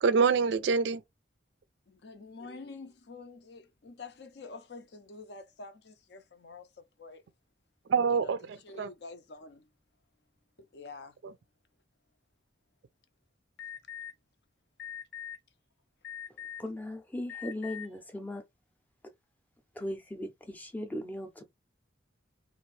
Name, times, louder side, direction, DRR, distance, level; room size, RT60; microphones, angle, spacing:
voice 1, 0.0-1.0 7.9-8.9 11.2-11.3, right 5 dB, 65° right, 0.3 m, -26 dB
voice 2, 1.9-7.2 8.1-9.7 10.6-11.2, left 3 dB, 60° left, 0.5 m, -48 dB
Alarm, 13.6-14.1 14.8-15.4 16.0-16.7 17.3-17.9, left 9 dB, 85° left, 1.0 m, -41 dB
voice 3, 16.6-18.4 19.8-21.4, left 1 dB, 10° left, 0.5 m, -38 dB
2.7 x 2.5 x 3.1 m
head